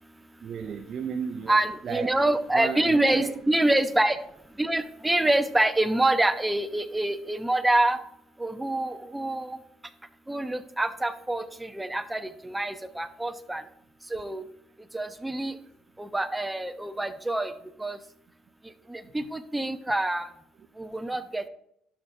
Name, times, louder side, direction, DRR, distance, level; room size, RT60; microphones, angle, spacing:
voice 1, 0.4-1.6 1.8-2.2 2.5-3.4, right 7 dB, 50° right, 8 dB, 0.6 m, -34 dB
voice 2, 1.5-4.2 4.6-8.0 8.4-9.6 10.3-13.6 14.1-14.4 14.9-15.5 16.0-17.5 17.8-18.0 18.9-20.3 20.8-21.5, right 1 dB, 10° right, 10 dB, 0.7 m, -26 dB
11.5 x 6.8 x 2.7 m, 0.75 s
supercardioid pair, 85°, 0 cm